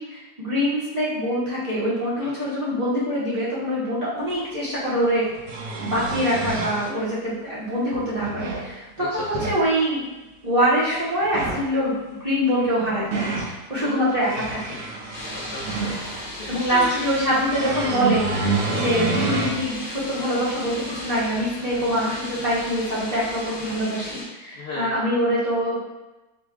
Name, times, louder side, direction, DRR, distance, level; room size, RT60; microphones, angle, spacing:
voice 1, 0.0-5.2 5.8-10.0 10.4-14.8 16.5-25.8, equal, 35° right, -10 dB, 0.7 m, -24 dB
sound 1, 4.3-4.4 5.2-6.9 7.9-8.7 9.1-9.6 11.2-11.7 12.6-13.6 14.1-16.3 17.5-19.6 20.2-20.3 21.8-21.9, right 3 dB, 75° right, 1.1 m, -28 dB
sound 2, 15.1-24.2, left 1 dB, 50° left, 0.8 m, -36 dB
voice 2, 15.3-17.0 18.7-18.9 23.6-23.8 24.5-25.0, left 2 dB, 90° left, -5 dB, 0.5 m, -36 dB
5.0 x 2.2 x 2.4 m, 1.1 s
omnidirectional pair, 1.7 m